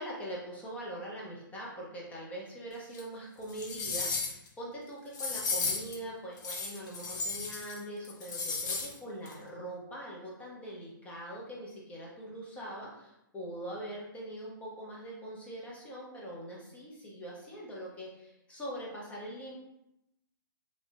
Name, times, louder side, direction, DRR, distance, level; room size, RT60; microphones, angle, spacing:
voice 1, 0.0-19.5, right 1 dB, 10° left, -4 dB, 0.8 m, -42 dB
sound 1, 2.9-3.0 3.5-4.5 5.1-6.0 6.4-7.8 8.0-8.9 9.3-9.4, left 4 dB, 55° left, 0.7 m, -34 dB
3.2 x 2.6 x 2.7 m, 0.85 s
hypercardioid pair, 145°, 12 cm